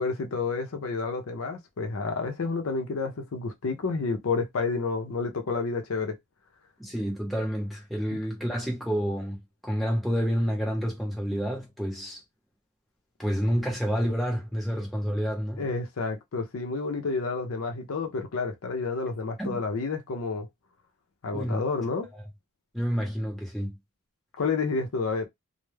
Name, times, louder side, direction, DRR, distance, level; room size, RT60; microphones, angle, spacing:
voice 1, 0.0-6.2 8.1-8.2 15.6-20.5 21.2-22.1 24.4-25.3, left 4 dB, 65° left, 0.5 m, -30 dB
voice 2, 6.8-9.4 9.6-12.2 13.2-15.6 19.4-19.6 21.3-21.6 22.1-22.3 22.7-23.8, equal, ahead, 0.8 m, -29 dB
2.2 x 2.0 x 3.1 m
head